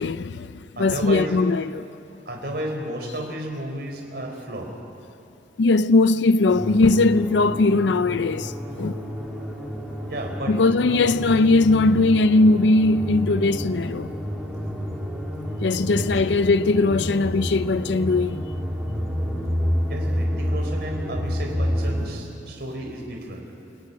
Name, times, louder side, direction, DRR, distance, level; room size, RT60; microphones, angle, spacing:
voice 1, 0.0-1.9 5.6-8.5 8.8-9.0 10.5-14.1 15.6-18.5, left 3 dB, 75° left, 0.5 m, -19 dB
voice 2, 0.8-1.4 2.3-4.7 10.1-10.6 10.8-11.1 19.9-23.5, right 1 dB, 60° right, 4.2 m, -32 dB
sound 1, 6.5-22.1, equal, 5° right, 2.9 m, -29 dB
27.0 x 18.0 x 9.6 m
head